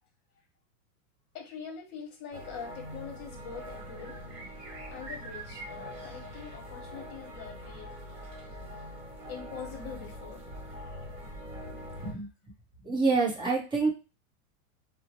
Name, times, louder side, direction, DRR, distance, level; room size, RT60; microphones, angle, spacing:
voice 1, 1.3-4.2 4.9-7.9 9.2-10.4 11.5-11.6, left 7 dB, 35° left, 2 dB, 1.1 m, -44 dB
sound 1, 2.3-12.1, equal, 30° right, 1.3 m, -43 dB
voice 2, 12.8-13.9, right 4 dB, 10° right, -3 dB, 0.9 m, -26 dB
2.8 x 2.1 x 2.9 m, 0.29 s
supercardioid pair, 135°, 41 cm